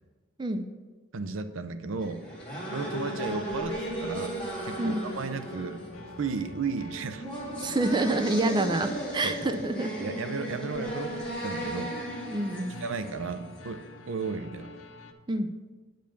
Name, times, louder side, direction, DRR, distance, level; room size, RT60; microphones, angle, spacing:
voice 1, 1.1-2.2 2.7-4.4 4.6-5.8 6.2-7.2 9.2-9.4 10.0-12.0 12.8-14.7, right 4 dB, 70° right, 10 dB, 0.6 m, -34 dB
sound 1, 2.0-13.9, right 1 dB, 5° left, 2.1 m, -36 dB
sound 2, 2.7-15.1, left 2 dB, 85° left, 0.9 m, -48 dB
voice 2, 7.6-9.9 12.3-12.8 15.3-15.5, right 2 dB, 20° right, 7 dB, 0.5 m, -27 dB
9.0 x 5.3 x 6.8 m, 1.4 s
head